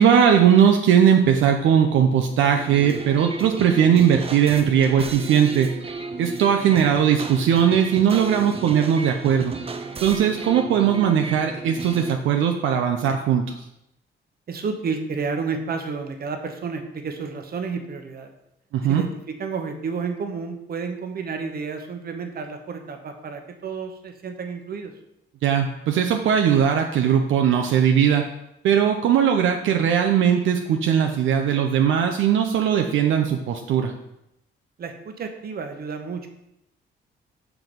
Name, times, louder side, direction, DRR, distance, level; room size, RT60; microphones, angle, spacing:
voice 1, 0.0-5.7 6.2-9.5 10.0-13.5 18.7-19.0 25.4-28.2 28.6-33.9, right 8 dB, 80° right, 3 dB, 0.7 m, -19 dB
sound 1, 2.5-12.1, right 4 dB, 30° right, 0.7 m, -34 dB
voice 2, 14.5-18.3 18.8-24.9 34.8-36.3, right 5 dB, 50° right, 6 dB, 1.1 m, -31 dB
5.9 x 4.6 x 5.2 m, 0.83 s
cardioid pair, 90°, 20 cm